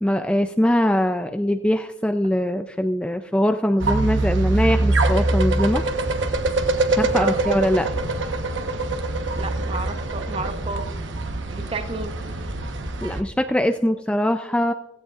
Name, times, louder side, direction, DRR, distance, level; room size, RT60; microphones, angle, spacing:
voice 1, 0.0-5.8 7.0-7.9 13.0-14.7, left 1 dB, 5° left, 6 dB, 0.3 m, -22 dB
sound 1, 3.8-13.2, right 2 dB, 70° right, 1.1 m, -24 dB
voice 2, 9.4-10.8 11.5-12.1, right 3 dB, 30° right, 8 dB, 0.9 m, -31 dB
15.5 x 15.5 x 2.5 m, 0.99 s
head